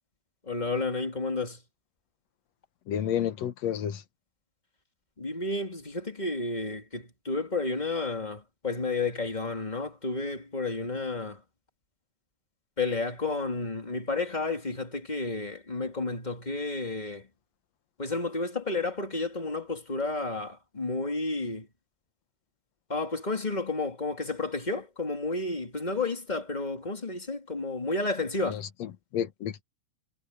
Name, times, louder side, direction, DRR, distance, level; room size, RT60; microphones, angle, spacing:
voice 1, 0.5-1.6 5.2-11.4 12.8-17.3 18.0-21.7 22.9-28.6, left 3 dB, 15° left, 2.5 m, -31 dB
voice 2, 2.9-4.0 28.5-29.6, left 9 dB, 65° left, 2.4 m, -31 dB
omnidirectional pair, 3.4 m